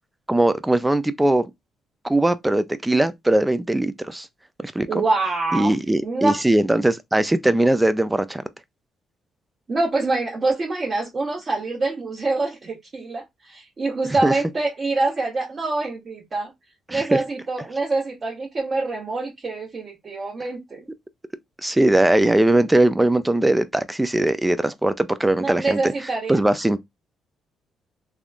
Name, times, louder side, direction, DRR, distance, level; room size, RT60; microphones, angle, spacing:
voice 1, 0.3-1.5 2.0-4.3 4.6-5.0 5.5-8.4 14.2-14.3 16.9-17.2 21.6-25.8 26.3-26.8, right 1 dB, 10° right, 0.3 m, -20 dB
voice 2, 4.9-5.7 6.0-6.4 9.7-16.5 16.9-20.9 25.4-26.4, right 3 dB, 40° right, 1.1 m, -25 dB
3.4 x 2.3 x 2.5 m
cardioid pair, 90°, 0 cm